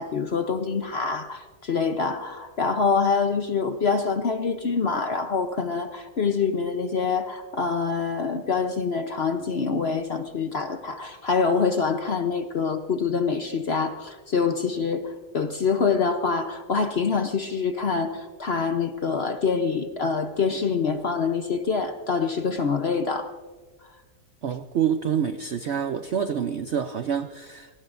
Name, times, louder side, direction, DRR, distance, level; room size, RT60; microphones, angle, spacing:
voice 1, 0.0-23.3, left 5 dB, 50° left, 7 dB, 0.8 m, -25 dB
voice 2, 24.4-27.7, right 8 dB, 65° right, 9 dB, 0.6 m, -27 dB
28.0 x 18.5 x 2.6 m, 1.3 s
omnidirectional pair, 1.8 m